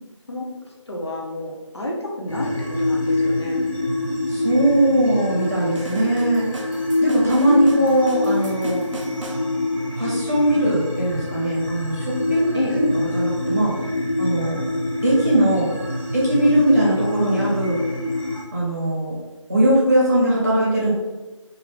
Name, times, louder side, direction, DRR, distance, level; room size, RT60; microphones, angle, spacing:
voice 1, 0.9-3.7 12.5-12.8, left 1 dB, 55° left, -2 dB, 0.6 m, -30 dB
sound 1, 2.3-18.4, left 2 dB, 90° left, 0.9 m, -25 dB
voice 2, 4.3-6.4 7.0-8.8 9.9-12.9 13.1-13.7 14.2-14.6 15.0-15.7 16.1-17.8 18.5-19.2 19.5-20.9, right 1 dB, 30° right, -6 dB, 0.8 m, -20 dB
sound 2, 5.8-9.4, right 1 dB, 70° right, 0.5 m, -37 dB
2.5 x 2.2 x 3.2 m, 1.2 s
figure-of-eight pair, 175°, 17 cm